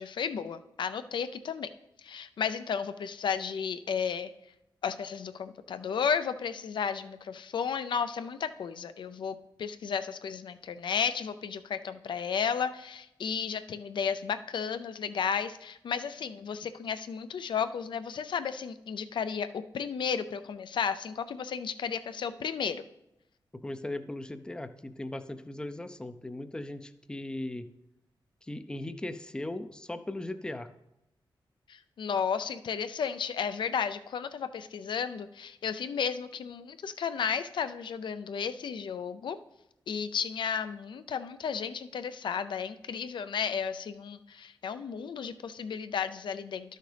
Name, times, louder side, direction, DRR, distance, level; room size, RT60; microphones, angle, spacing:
voice 1, 0.0-1.7 2.0-4.3 4.8-22.8 31.7-39.4 39.9-46.8, left 7 dB, 70° left, 11 dB, 0.4 m, -33 dB
voice 2, 23.6-27.7 28.4-30.7, left 1 dB, 10° left, 11 dB, 0.4 m, -38 dB
12.0 x 6.5 x 3.3 m, 0.89 s
wide cardioid pair, 120°, 8 cm